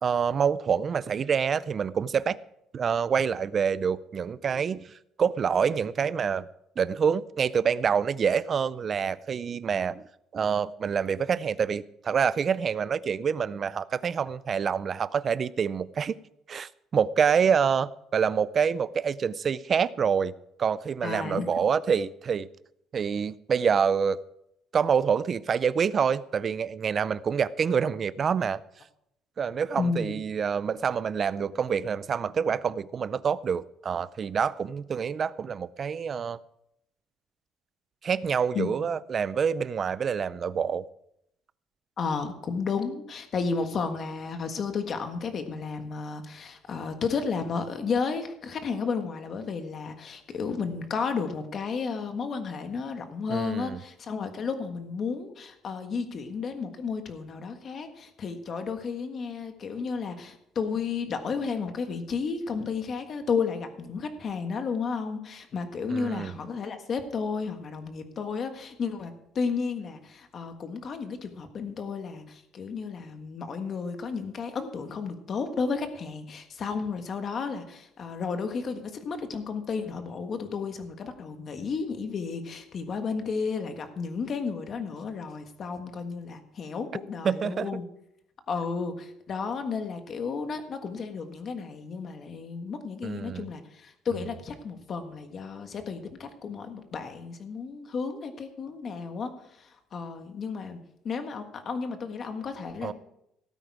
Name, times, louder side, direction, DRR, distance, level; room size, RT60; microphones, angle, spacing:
voice 1, 0.0-2.4 2.7-4.9 5.2-6.5 6.8-10.0 10.3-16.2 16.5-20.3 20.6-22.5 22.9-24.2 24.7-28.6 29.4-36.4 38.0-40.9 53.3-53.8 65.9-66.3 87.2-87.7 93.0-93.5 102.8-102.9, right 7 dB, 30° right, 0.4 m, -26 dB
voice 2, 21.0-21.5 29.7-30.3 38.5-38.7 42.0-87.8 88.5-100.8 101.0-102.9, left 5 dB, 35° left, 1.5 m, -32 dB
17.0 x 9.0 x 4.8 m
cardioid pair, 165°, 0 cm